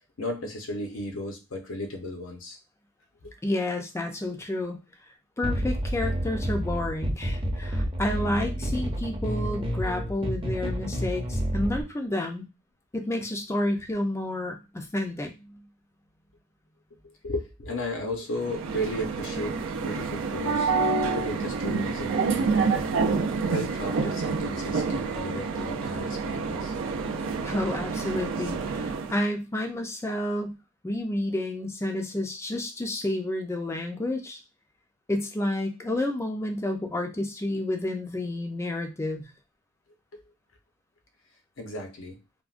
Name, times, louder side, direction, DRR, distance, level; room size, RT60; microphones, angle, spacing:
voice 1, 0.2-2.6 3.2-3.3 17.0-20.7 21.0-22.9 23.4-26.7 40.1-40.2 41.6-42.2, left 1 dB, 80° left, 3 dB, 0.7 m, -35 dB
voice 2, 3.4-4.8 5.4-12.5 12.9-15.6 27.4-30.6 30.8-34.4 35.1-39.2, left 1 dB, 15° left, 3 dB, 0.4 m, -30 dB
sound 1, 5.4-11.8, equal, 25° right, 0.6 m, -29 dB
U Bahn announcer Rosenthaler Platz, 18.3-29.2, right 4 dB, 75° right, 0.4 m, -28 dB
3.5 x 2.1 x 2.4 m, 0.28 s
head